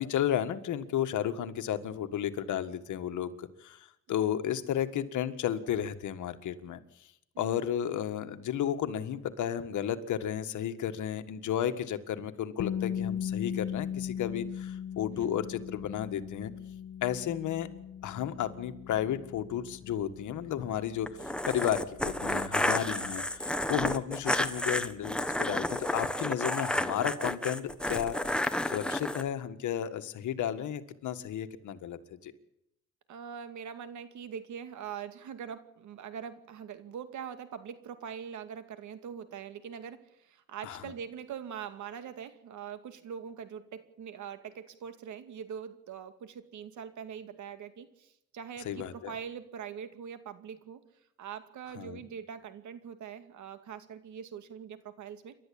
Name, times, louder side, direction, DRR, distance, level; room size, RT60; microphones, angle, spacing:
voice 1, 0.0-6.8 7.4-16.5 17.0-17.7 18.0-21.2 21.5-28.2 28.7-32.3 40.6-40.9 48.6-49.1 51.8-52.0, left 10 dB, 75° left, 9 dB, 1.8 m, -33 dB
sound 1, 12.6-24.4, left 9 dB, 50° left, 0.8 m, -39 dB
sound 2, 21.1-29.2, left 1 dB, 5° left, 1.4 m, -31 dB
voice 2, 33.1-50.8 51.2-55.4, right 8 dB, 75° right, 10 dB, 2.4 m, -43 dB
28.5 x 12.5 x 8.8 m, 0.80 s
cardioid pair, 90°, 30 cm